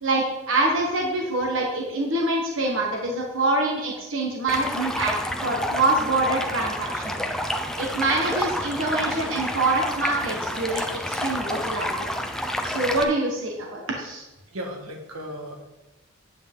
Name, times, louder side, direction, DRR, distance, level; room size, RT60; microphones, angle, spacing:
voice 1, 0.0-7.2 7.8-11.9 12.6-14.2, right 2 dB, 60° right, 0 dB, 1.5 m, -25 dB
Stream, 4.5-13.0, equal, ahead, 0.5 m, -29 dB
voice 2, 7.5-7.9 14.5-15.6, equal, 85° right, 2 dB, 1.7 m, -37 dB
9.5 x 8.4 x 3.8 m, 1.0 s
head